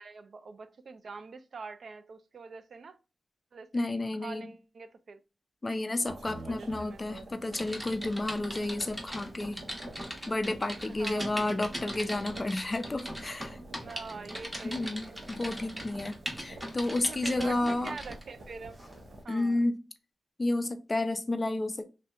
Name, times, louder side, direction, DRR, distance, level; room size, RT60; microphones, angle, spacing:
voice 1, 0.0-3.0 3.5-5.2 5.9-7.3 10.9-11.5 13.8-15.2 17.1-18.8 19.2-19.6, right 4 dB, 60° right, 0.3 m, -45 dB
voice 2, 3.7-4.5 5.6-9.6 10.3-13.6 14.6-17.9 19.3-19.8 20.4-21.9, left 2 dB, 25° left, 0.4 m, -31 dB
sound 1, 6.0-19.2, right 1 dB, 80° right, 0.9 m, -49 dB
Typing, 7.5-18.2 18.8-19.0, equal, 10° right, 0.8 m, -40 dB
3.2 x 2.7 x 2.3 m
wide cardioid pair, 130°, 0 cm